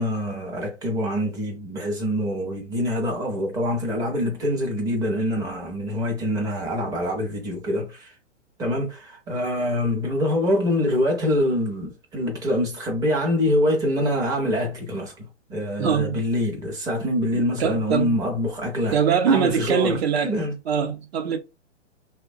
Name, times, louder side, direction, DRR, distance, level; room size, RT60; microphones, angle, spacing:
voice 1, 0.0-8.1 8.6-19.0 19.3-20.6, left 1 dB, 10° right, 0.5 m, -25 dB
voice 2, 15.8-16.2 17.6-18.2 18.9-20.4 20.7-21.4, right 7 dB, 55° right, 0.8 m, -22 dB
3.0 x 2.2 x 2.6 m
hypercardioid pair, 130°, 37 cm